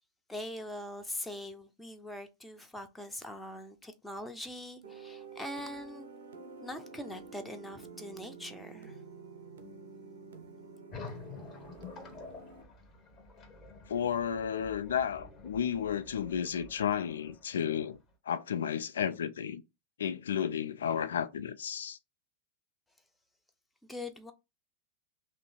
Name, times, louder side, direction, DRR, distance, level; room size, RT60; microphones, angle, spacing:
voice 1, 0.3-6.1 6.6-9.0 23.8-24.3, left 1 dB, 5° left, 0.6 m, -42 dB
sound 1, 4.8-12.6, right 5 dB, 65° right, 0.7 m, -49 dB
sound 2, 10.9-18.1, left 4 dB, 30° left, 1.0 m, -49 dB
voice 2, 13.9-18.0 18.3-19.6 20.0-22.0, left 8 dB, 65° left, 0.3 m, -32 dB
3.1 x 2.6 x 4.2 m
figure-of-eight pair, 90°, 0 cm